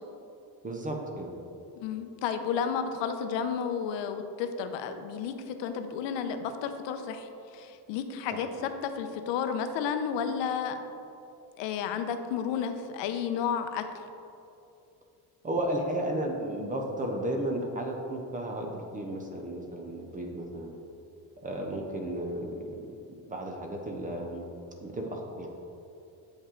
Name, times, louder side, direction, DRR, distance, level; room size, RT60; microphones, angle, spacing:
voice 1, 0.6-1.3 8.3-8.4 15.4-20.7 21.4-22.8 23.1-24.5 24.8-25.5, right 1 dB, 20° right, 2 dB, 0.4 m, -33 dB
voice 2, 1.8-10.8 11.6-13.8, left 7 dB, 80° left, 8 dB, 0.7 m, -32 dB
8.3 x 5.3 x 3.7 m, 2.7 s
cardioid pair, 180°, 43 cm